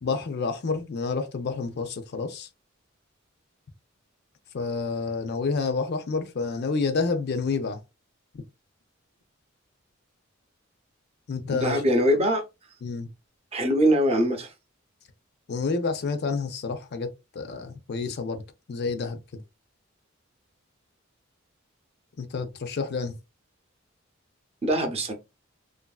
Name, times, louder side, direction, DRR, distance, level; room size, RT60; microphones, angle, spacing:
voice 1, 0.0-2.5 4.5-7.8 11.3-11.8 12.8-13.1 15.5-18.4 18.7-19.4 22.2-23.2, left 4 dB, 55° left, 0.5 m, -29 dB
voice 2, 11.5-12.4 13.5-14.5 24.6-25.1, equal, 30° right, 0.6 m, -22 dB
3.0 x 2.5 x 2.3 m
head